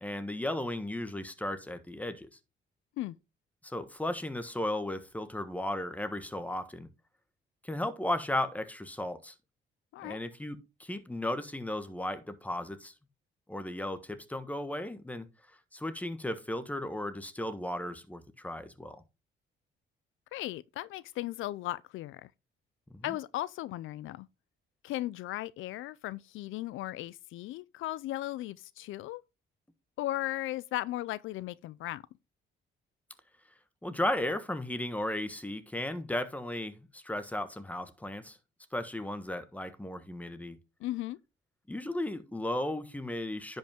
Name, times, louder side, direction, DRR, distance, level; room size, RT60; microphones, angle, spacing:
voice 1, 0.0-2.3 3.6-6.9 7.6-9.3 10.0-12.9 13.5-15.3 15.7-19.0 22.9-23.2 33.8-38.4 38.7-40.6 41.7-43.6, left 1 dB, 5° left, 1.3 m, -35 dB
voice 2, 20.3-22.3 23.0-24.3 24.8-29.2 30.0-32.0 40.8-41.2, left 15 dB, 80° left, 0.4 m, -36 dB
10.0 x 5.4 x 3.5 m
cardioid pair, 90°, 20 cm